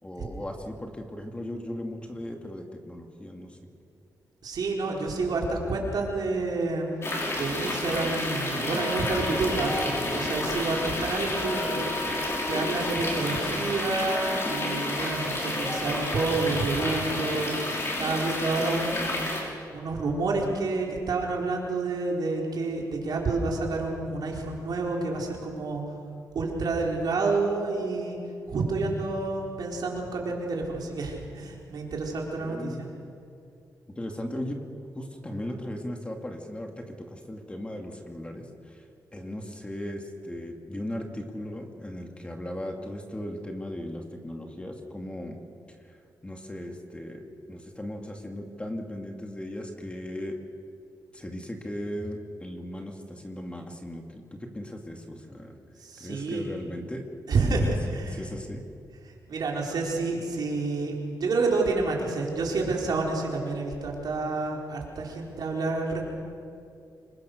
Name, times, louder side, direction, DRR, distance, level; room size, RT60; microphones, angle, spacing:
voice 1, 0.0-3.6 32.4-32.8 33.9-34.6 34.9-38.8 39.1-45.4 46.2-50.4 51.1-55.6 56.0-57.1 57.5-57.7 58.1-58.6, left 1 dB, 15° left, 3 dB, 2.4 m, -37 dB
voice 2, 4.4-6.9 7.3-11.9 12.4-17.5 18.0-19.3 19.7-25.8 26.3-28.2 28.5-32.9 55.8-56.5 57.3-58.3 59.3-66.0, right 3 dB, 70° right, -1 dB, 4.4 m, -29 dB
sound 1, 7.0-19.4, left 1 dB, 40° left, 6.0 m, -30 dB
26.5 x 22.5 x 6.6 m, 2.6 s
wide cardioid pair, 110°, 7 cm